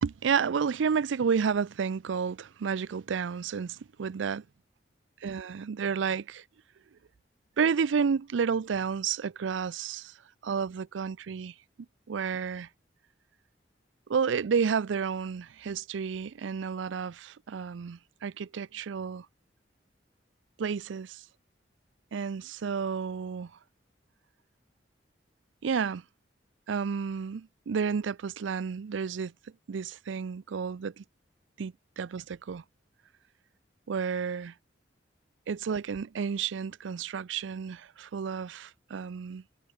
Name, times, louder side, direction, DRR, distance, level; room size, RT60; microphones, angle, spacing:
voice 1, 0.0-4.4 5.2-6.4 7.6-10.2 10.4-11.5 12.1-12.7 14.1-19.3 20.6-21.2 22.1-23.5 25.6-26.0 26.7-29.3 29.7-31.0 31.6-32.6 33.9-34.5 35.5-39.4, right 6 dB, 85° right, 0.4 m, -31 dB
head